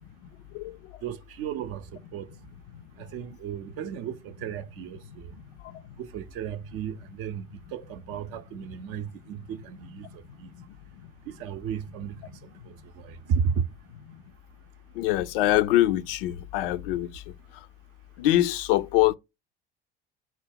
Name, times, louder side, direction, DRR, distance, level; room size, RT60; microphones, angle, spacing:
voice 1, 1.0-2.3 3.0-5.3 6.0-10.5 11.3-12.2 12.7-13.6, right 7 dB, 50° right, 0.6 m, -34 dB
voice 2, 15.0-17.1 18.2-19.1, left 14 dB, 65° left, 0.5 m, -23 dB
5.8 x 2.2 x 3.7 m
figure-of-eight pair, 65°, 30 cm